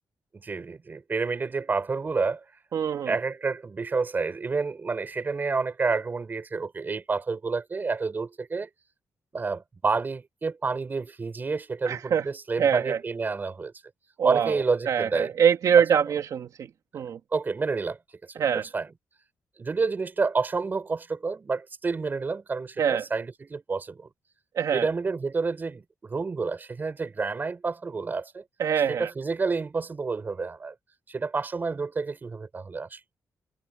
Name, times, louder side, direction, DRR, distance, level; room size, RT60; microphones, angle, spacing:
voice 1, 0.3-2.4 3.1-8.7 9.3-13.7 14.2-15.3 15.8-15.9 16.9-17.0 17.3-18.0 18.5-18.9 19.6-24.1 24.7-28.4 28.9-30.7 31.1-33.0, right 4 dB, 30° right, 5.6 m, -29 dB
voice 2, 2.7-3.1 11.9-12.2 12.6-13.0 14.2-16.7 16.9-17.2 18.4-18.6 22.8-23.0 24.5-24.9 28.6-29.1, right 8 dB, 65° right, 2.7 m, -24 dB
cardioid pair, 140°, 6 cm